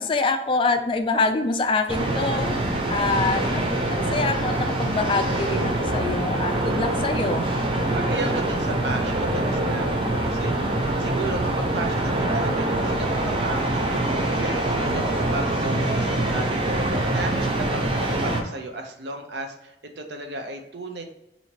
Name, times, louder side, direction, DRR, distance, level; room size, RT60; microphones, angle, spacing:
voice 1, 0.0-7.5, left 3 dB, 30° left, 7 dB, 0.3 m, -25 dB
sound 1, 1.9-18.4, right 1 dB, 30° right, 0.5 m, -24 dB
voice 2, 7.9-21.0, right 2 dB, 70° right, 4 dB, 0.6 m, -34 dB
2.9 x 2.8 x 4.4 m, 0.89 s
head